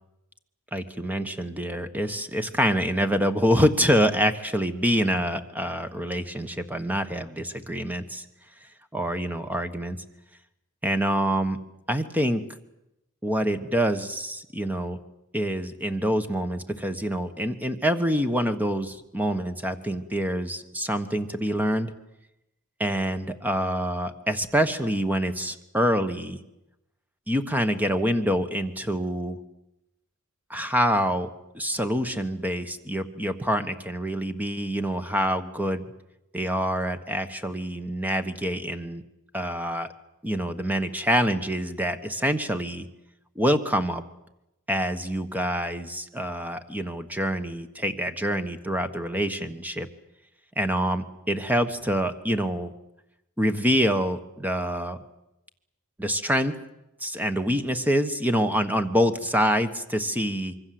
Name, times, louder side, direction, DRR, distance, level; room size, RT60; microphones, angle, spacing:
voice 1, 0.7-8.2 8.9-10.0 10.8-11.6 11.9-12.4 13.2-15.0 15.3-21.9 22.8-26.4 27.3-29.4 30.5-31.3 31.5-35.9 36.3-39.0 39.3-39.9 40.2-42.9 43.3-44.0 44.7-49.9 50.6-52.7 53.4-55.0 56.0-56.5 57.0-60.5, equal, 5° right, 9 dB, 1.2 m, -26 dB
26.0 x 23.5 x 7.8 m, 0.89 s
head